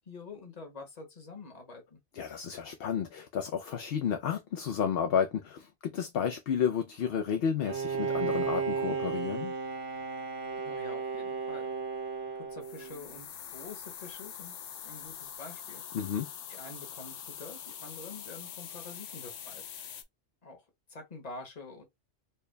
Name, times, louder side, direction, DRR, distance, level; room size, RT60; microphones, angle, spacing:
voice 1, 0.1-2.0 10.6-11.7 12.4-14.6 14.8-15.8 16.5-19.6 20.4-21.8, left 3 dB, 35° left, 1.1 m, -47 dB
voice 2, 2.1-9.5 15.9-16.3, left 7 dB, 65° left, 0.7 m, -31 dB
Bowed string instrument, 7.6-13.2, right 5 dB, 65° right, 1.1 m, -34 dB
sound 1, 12.6-20.0, left 9 dB, 85° left, 1.0 m, -44 dB
4.5 x 2.2 x 3.2 m
omnidirectional pair, 1.2 m